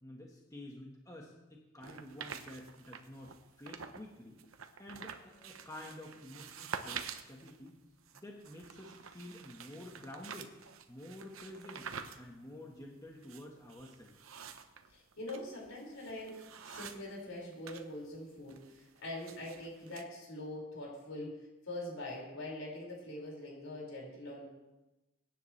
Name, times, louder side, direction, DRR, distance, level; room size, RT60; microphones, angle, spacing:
voice 1, 0.0-4.4 4.8-7.8 8.1-10.5 10.9-14.1, left 1 dB, 15° left, -1 dB, 1.5 m, -50 dB
sound 1, 1.8-4.1 4.4-17.8 18.1-20.0, right 6 dB, 80° right, 0.9 m, -48 dB
voice 2, 14.9-24.4, left 1 dB, 70° left, -3 dB, 5.5 m, -44 dB
23.0 x 10.0 x 3.3 m, 1.0 s
head